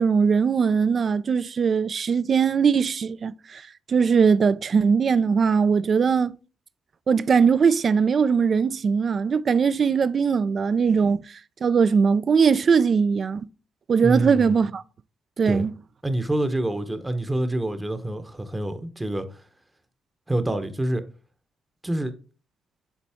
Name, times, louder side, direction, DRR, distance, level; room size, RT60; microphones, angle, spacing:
voice 1, 0.0-3.6 3.9-6.4 7.1-11.2 11.6-13.4 13.9-14.8 15.4-15.7, right 6 dB, 45° right, 0.3 m, -20 dB
voice 2, 14.0-14.6 15.5-15.7 16.0-19.4 20.3-21.0 21.8-22.1, right 1 dB, 15° right, 0.8 m, -27 dB
7.1 x 4.0 x 3.5 m
cardioid pair, 90°, 0 cm